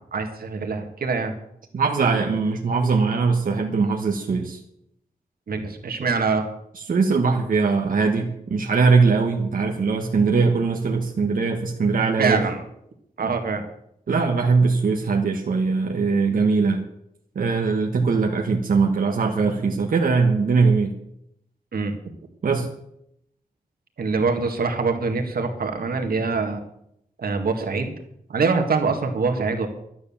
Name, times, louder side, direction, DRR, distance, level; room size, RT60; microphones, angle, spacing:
voice 1, 0.1-1.3 5.5-6.4 12.2-12.6 13.2-13.6 21.7-22.0 24.0-26.6 27.2-27.9 28.3-29.7, right 4 dB, 85° right, 4 dB, 1.9 m, -24 dB
voice 2, 1.7-4.6 6.9-12.4 14.1-16.8 17.3-20.9 22.4-22.7, right 4 dB, 65° right, 1 dB, 1.3 m, -21 dB
12.5 x 9.5 x 7.2 m, 0.77 s
wide cardioid pair, 170°, 15 cm